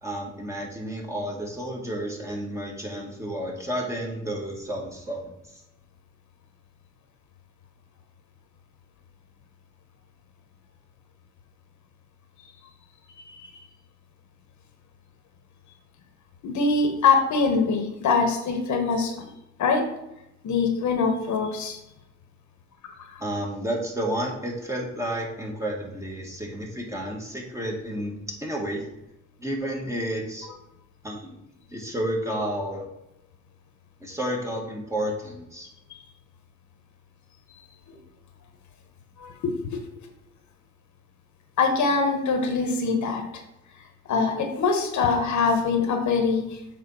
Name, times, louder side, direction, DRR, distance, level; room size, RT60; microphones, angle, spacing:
voice 1, 0.0-5.6 23.2-28.1 28.4-28.9 29.4-30.5 31.0-31.4 31.7-32.9 34.0-35.7, right 1 dB, 10° right, -1 dB, 2.0 m, -31 dB
voice 2, 16.4-19.3 19.6-19.9 20.4-21.8 23.0-23.2 37.9-38.0 39.2-39.8 41.6-43.4 44.1-46.6, left 4 dB, 70° left, 5 dB, 1.3 m, -24 dB
7.2 x 3.8 x 5.7 m, 0.88 s
cardioid pair, 90°, 30 cm